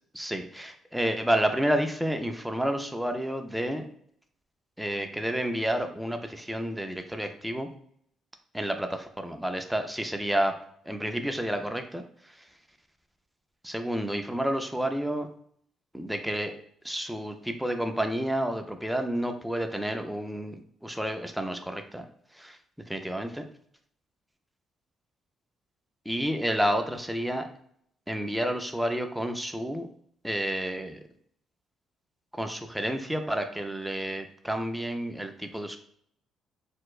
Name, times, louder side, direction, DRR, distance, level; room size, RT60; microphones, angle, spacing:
voice 1, 0.1-3.9 4.8-7.7 8.5-10.6 10.9-12.0 13.6-15.3 15.9-16.5 16.8-22.0 22.4-22.6 22.9-23.4 26.1-27.5 28.1-29.9 30.2-31.0 32.4-35.8, equal, ahead, 5 dB, 0.3 m, -30 dB
4.3 x 2.1 x 2.3 m, 0.65 s
cardioid pair, 125°, 0 cm